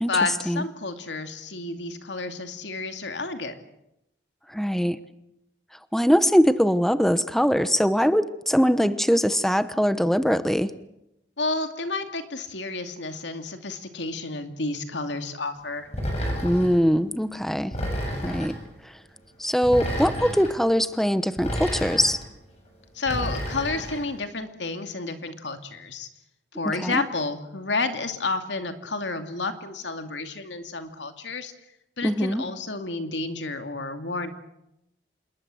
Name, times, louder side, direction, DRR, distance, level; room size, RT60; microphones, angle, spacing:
voice 1, 0.1-3.5 11.4-15.9 22.9-26.1 26.5-31.5 32.0-34.3, left 3 dB, 90° left, 7 dB, 2.6 m, -30 dB
voice 2, 4.5-5.0 5.9-10.7 16.4-17.7 18.2-18.5 18.8-19.0 19.4-22.2 26.8-27.0 32.0-32.4, equal, ahead, 12 dB, 0.9 m, -22 dB
sound 1, 15.9-16.8 17.7-18.6 19.6-20.5 21.4-22.2 23.1-24.0, equal, 35° left, 7.1 m, -30 dB
27.0 x 21.0 x 7.8 m, 0.86 s
head